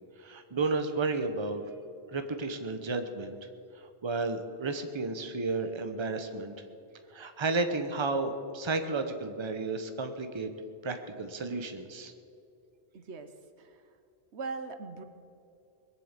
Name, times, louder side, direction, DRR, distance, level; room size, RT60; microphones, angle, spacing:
voice 1, 0.2-1.6 2.1-3.4 4.0-6.5 7.1-10.5 10.8-12.1, right 3 dB, 25° right, 8 dB, 1.0 m, -32 dB
voice 2, 12.9-13.3 13.6-13.9 14.3-15.0, right 4 dB, 70° right, 9 dB, 1.2 m, -40 dB
21.5 x 7.7 x 8.2 m, 2.6 s
omnidirectional pair, 1.2 m